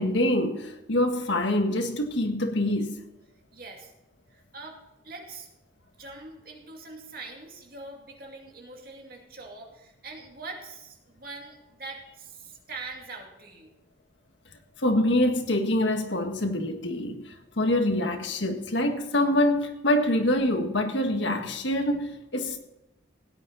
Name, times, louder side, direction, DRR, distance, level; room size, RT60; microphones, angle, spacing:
voice 1, 0.0-2.9 14.8-17.2 17.6-22.6, left 1 dB, 85° left, 1.7 m, -25 dB
voice 2, 3.5-3.9 4.3-4.8 5.0-5.5 6.0-13.7, right 3 dB, 55° right, 2.5 m, -43 dB
16.5 x 9.7 x 4.1 m
head